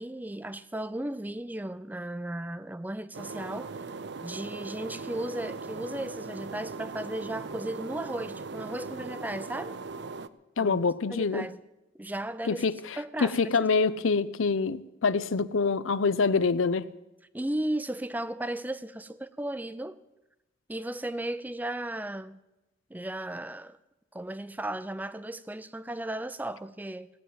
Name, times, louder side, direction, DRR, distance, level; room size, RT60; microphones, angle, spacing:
voice 1, 0.0-3.7 4.2-9.8 10.6-10.8 11.1-11.6 12.0-12.6 13.0-13.7 17.3-20.0 20.7-22.4 22.9-23.8 24.1-27.1, right 1 dB, 10° right, 0.4 m, -35 dB
sound 1, 3.1-10.3, right 4 dB, 60° right, 0.5 m, -39 dB
voice 2, 10.6-11.5 12.5-16.9, left 4 dB, 90° left, 0.6 m, -26 dB
17.0 x 9.3 x 7.5 m
head